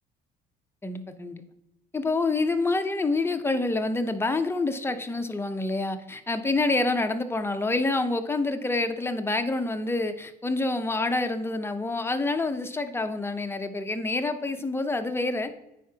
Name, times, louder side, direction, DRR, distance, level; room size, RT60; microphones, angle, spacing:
voice 1, 0.8-1.4 1.9-15.6, left 2 dB, 15° left, 7 dB, 0.7 m, -27 dB
9.2 x 4.8 x 2.8 m, 0.90 s
cardioid pair, 90°, 18 cm